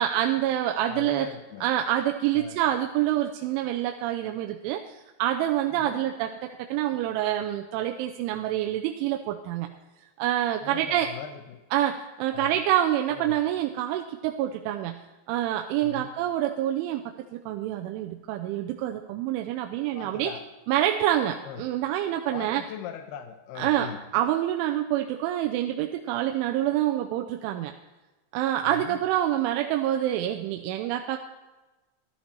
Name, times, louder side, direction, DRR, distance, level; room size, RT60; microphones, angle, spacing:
voice 1, 0.0-1.3 1.6-9.7 10.2-11.1 11.7-15.0 15.3-17.0 17.3-20.3 20.7-22.6 23.6-27.7 28.3-31.2, right 12 dB, 90° right, 4 dB, 3.2 m, -27 dB
voice 2, 0.8-1.7 2.3-2.6 5.7-6.1 10.6-11.6 12.3-12.6 13.1-13.4 15.8-16.1 19.9-20.4 21.5-21.7 22.3-24.0 28.6-29.0, left 9 dB, 80° left, 7 dB, 2.4 m, -40 dB
14.5 x 12.5 x 4.4 m, 1.1 s
omnidirectional pair, 5.4 m